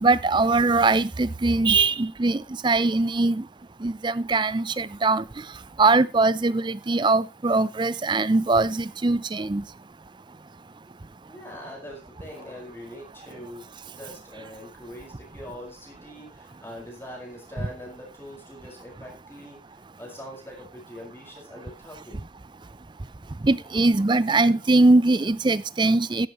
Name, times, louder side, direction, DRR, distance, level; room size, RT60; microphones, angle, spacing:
voice 1, 0.0-3.4 3.8-5.2 5.8-9.6 23.4-26.3, right 3 dB, 25° right, 0.5 m, -21 dB
voice 2, 11.3-19.6 20.0-22.2, left 1 dB, 15° left, 5.0 m, -42 dB
13.5 x 11.0 x 3.0 m
head